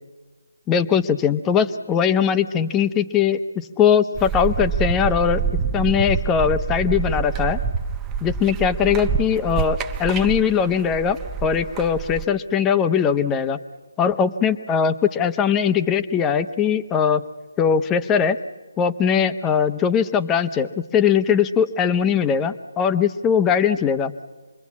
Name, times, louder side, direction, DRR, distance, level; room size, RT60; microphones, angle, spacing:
voice 1, 0.7-5.4 5.7-7.6 8.2-13.6 14.0-17.2 17.6-18.4 18.8-24.1, left 7 dB, 15° left, 10 dB, 0.8 m, -20 dB
sound 1, 4.1-12.2, right 6 dB, 15° right, 0.9 m, -26 dB
27.0 x 22.0 x 8.5 m, 1.3 s
figure-of-eight pair, 155°, 0 cm